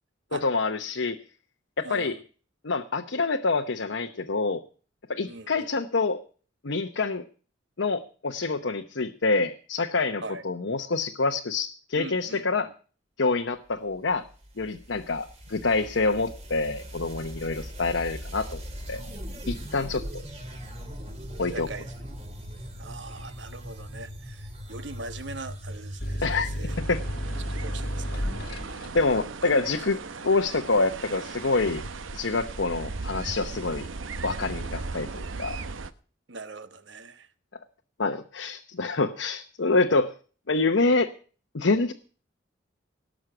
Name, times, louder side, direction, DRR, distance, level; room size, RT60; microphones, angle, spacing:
voice 1, 0.3-1.2 1.8-2.1 2.6-4.6 5.1-6.2 6.6-7.2 7.8-12.7 13.2-14.2 14.6-18.6 18.9-19.0 19.5-20.2 21.4-21.7 26.2-26.5 26.9-27.0 28.9-30.0 30.2-31.8 32.1-33.9 34.2-35.6 38.0-40.1 40.5-41.1 41.5-41.9, left 3 dB, 70° left, 4 dB, 0.9 m, -26 dB
voice 2, 1.8-2.2 5.2-5.7 10.2-10.4 11.9-12.7 21.5-21.9 22.8-26.8 27.5-28.4 28.8-29.0 29.3-30.1 30.9-31.0 34.9-35.0 36.3-37.3, right 3 dB, 65° right, 11 dB, 1.1 m, -42 dB
sound 1, 13.9-26.8, equal, 35° right, 2.4 m, -40 dB
sound 2, 26.0-33.3 33.7-34.4, equal, 55° left, 1.4 m, -34 dB
sound 3, 26.7-35.9, right 3 dB, 85° right, 0.8 m, -37 dB
18.0 x 6.4 x 7.8 m, 0.40 s
head